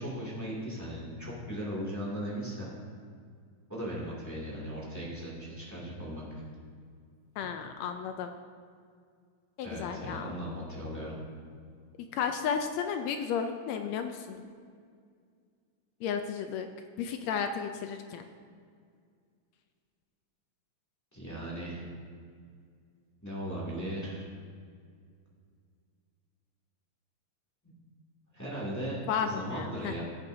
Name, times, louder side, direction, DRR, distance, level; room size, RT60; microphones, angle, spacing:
voice 1, 0.0-2.7 3.7-6.4 9.6-11.1 21.1-21.9 23.2-24.2 27.6-27.7 28.3-30.0, equal, 5° left, -5 dB, 1.5 m, -37 dB
voice 2, 7.4-8.3 9.6-10.4 12.1-14.4 16.0-16.7 17.0-18.3 29.1-29.9, left 7 dB, 80° left, 6 dB, 1.6 m, -33 dB
15.0 x 8.3 x 2.7 m, 2.1 s
omnidirectional pair, 3.4 m